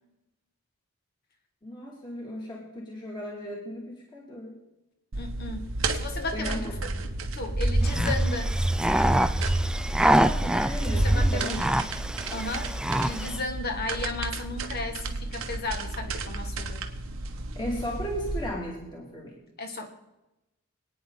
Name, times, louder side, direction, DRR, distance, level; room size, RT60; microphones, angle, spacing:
voice 1, 1.6-4.5 6.3-7.0 10.0-11.6 17.6-19.4, equal, 20° left, -2 dB, 2.5 m, -36 dB
voice 2, 5.1-5.7 5.9-6.7 7.3-8.6 11.0-11.8 12.3-12.8 13.0-16.9 19.6-19.9, left 2 dB, 50° left, 5 dB, 1.8 m, -34 dB
sound 1, 5.1-18.5, right 2 dB, 80° right, 1.2 m, -34 dB
sound 2, 6.7-11.3, right 1 dB, 25° right, 1.1 m, -27 dB
sound 3, 7.8-13.4, right 1 dB, 5° right, 0.4 m, -26 dB
26.0 x 9.4 x 3.9 m, 0.98 s
head